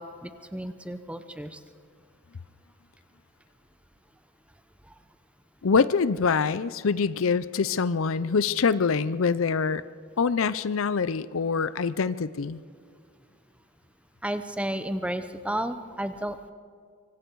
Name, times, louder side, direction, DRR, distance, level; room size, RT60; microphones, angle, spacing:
voice 1, 0.0-1.6 4.9-5.0 14.2-16.5, right 1 dB, 5° right, 9 dB, 0.7 m, -32 dB
voice 2, 5.6-9.8 10.2-12.6, left 5 dB, 65° left, 16 dB, 0.5 m, -25 dB
24.5 x 24.5 x 4.7 m, 2.2 s
head